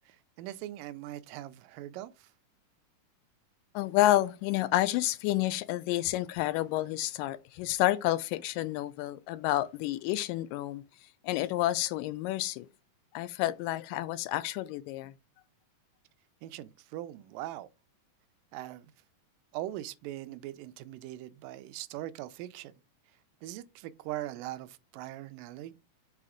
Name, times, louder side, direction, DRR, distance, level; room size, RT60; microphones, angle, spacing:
voice 1, 0.1-2.3 16.4-17.7 18.5-18.9 19.5-22.7 23.4-25.7, right 14 dB, 85° right, 2.2 m, -41 dB
voice 2, 3.8-10.8 11.2-12.7 13.1-15.1, left 15 dB, 90° left, 2.2 m, -29 dB
5.8 x 4.1 x 4.9 m
omnidirectional pair, 3.8 m